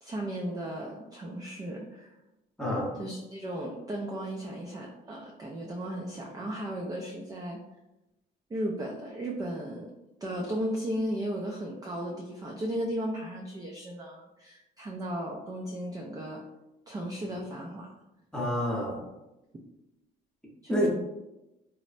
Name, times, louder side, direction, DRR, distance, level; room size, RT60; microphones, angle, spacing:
voice 1, 0.0-2.2 3.0-7.6 8.5-9.9 10.2-16.4 16.9-17.9 20.6-20.9, right 1 dB, 20° right, -1 dB, 0.3 m, -35 dB
voice 2, 2.6-2.9 18.3-19.0 20.7-20.9, equal, 5° left, -3 dB, 0.8 m, -28 dB
3.0 x 2.0 x 2.5 m, 0.96 s
cardioid pair, 90°, 20 cm